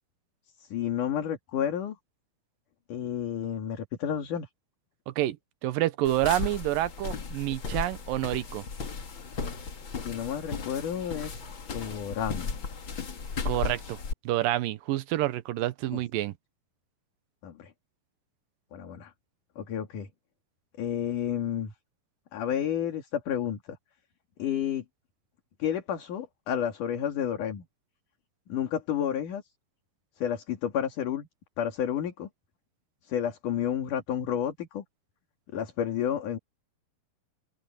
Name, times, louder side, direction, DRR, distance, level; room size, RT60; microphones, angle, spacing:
voice 1, 0.6-2.0 2.9-4.5 10.0-11.4 11.7-12.5 15.9-16.0 17.4-17.7 18.7-19.1 19.6-20.1 20.8-21.7 22.3-23.8 24.4-24.8 25.6-27.7 28.5-29.4 30.2-31.3 31.6-32.3 33.0-34.8 35.5-36.4, left 9 dB, 60° left, 3.6 m, -31 dB
voice 2, 5.6-8.6 13.5-14.0 14.3-16.3, right 15 dB, 75° right, 2.6 m, -28 dB
sound 1, 6.0-14.1, left 5 dB, 40° left, 2.3 m, -36 dB
open air
omnidirectional pair, 4.3 m